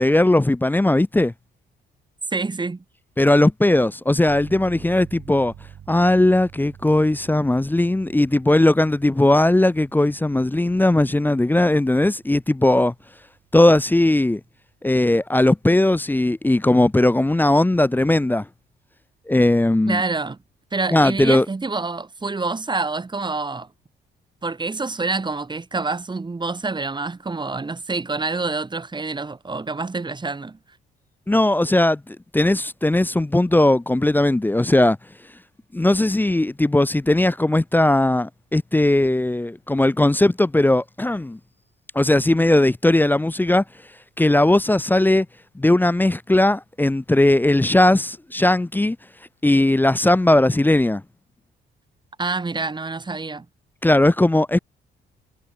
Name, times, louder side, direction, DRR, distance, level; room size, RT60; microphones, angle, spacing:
voice 1, 0.0-1.3 3.2-5.5 5.9-12.9 13.5-14.4 14.8-18.5 19.3-20.0 20.9-21.5 31.3-35.0 35.7-41.4 41.9-43.6 44.2-45.3 45.6-49.0 49.4-51.0 53.8-54.6, left 1 dB, 10° left, 0.6 m, -18 dB
voice 2, 2.3-2.8 19.9-20.4 20.7-23.7 24.4-30.6 52.2-53.5, right 3 dB, 20° right, 2.2 m, -27 dB
sound 1, 4.3-14.8, right 9 dB, 60° right, 3.4 m, -47 dB
cardioid pair, 90°, 20 cm